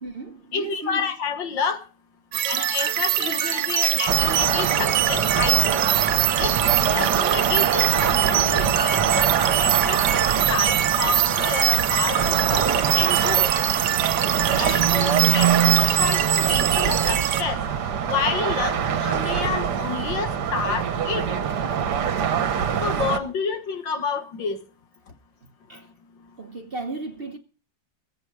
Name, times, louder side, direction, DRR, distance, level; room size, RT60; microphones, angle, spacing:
voice 1, 0.0-1.1 25.4-25.9 26.4-27.4, right 3 dB, 35° right, 1.1 m, -35 dB
voice 2, 0.5-1.9 2.5-5.8 6.4-13.5 14.6-17.7 18.1-21.4 22.8-24.6, left 6 dB, 75° left, 2.2 m, -29 dB
sound 1, 2.3-17.4, right 12 dB, 80° right, 1.6 m, -23 dB
sound 2, 4.1-23.2, right 8 dB, 60° right, 1.6 m, -24 dB
21.0 x 8.3 x 4.8 m
omnidirectional pair, 2.1 m